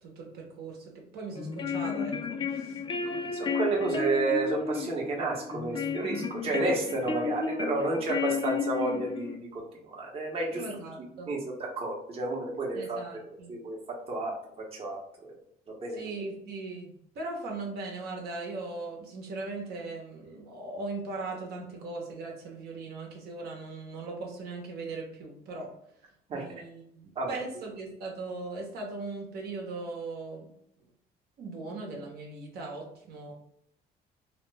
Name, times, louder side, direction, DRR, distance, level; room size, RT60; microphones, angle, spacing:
voice 1, 0.0-3.5 3.7-3.9 10.5-11.3 12.7-13.6 15.9-25.7 26.3-30.5 31.4-33.3, right 3 dB, 70° right, 0 dB, 0.9 m, -39 dB
sound 1, 1.3-9.4, left 5 dB, 30° left, 0.4 m, -33 dB
voice 2, 3.3-10.7 11.3-11.4 11.8-13.0 13.5-13.8 14.1-14.3 14.7-15.3 15.7-16.0 26.3-26.6 27.2-27.3, right 2 dB, 35° right, -2 dB, 0.8 m, -31 dB
2.8 x 2.1 x 3.3 m, 0.72 s
cardioid pair, 110°, 17 cm